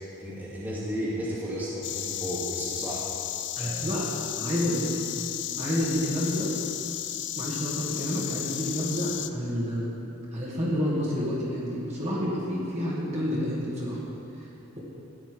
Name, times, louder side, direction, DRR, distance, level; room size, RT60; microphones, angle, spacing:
voice 1, 0.2-3.0 3.6-3.9, equal, 10° right, -8 dB, 2.3 m, -33 dB
Insect, 1.8-9.3, left 12 dB, 55° left, 0.5 m, -34 dB
voice 2, 3.6-4.1 4.4-4.9 5.6-6.5 7.3-9.8 10.3-14.0, equal, 30° right, -6 dB, 2.2 m, -29 dB
13.0 x 6.0 x 9.1 m, 2.8 s
head